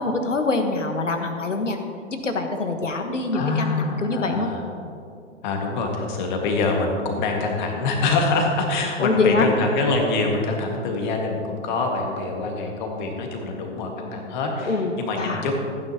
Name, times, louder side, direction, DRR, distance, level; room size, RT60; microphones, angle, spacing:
voice 1, 0.0-1.8 2.1-4.5 9.0-9.5 14.7-15.5, left 3 dB, 80° left, 6 dB, 1.4 m, -24 dB
voice 2, 3.3-4.6 5.4-15.5, left 3 dB, 40° left, 1 dB, 1.9 m, -25 dB
15.0 x 9.4 x 3.0 m, 2.5 s
figure-of-eight pair, 115°, 37 cm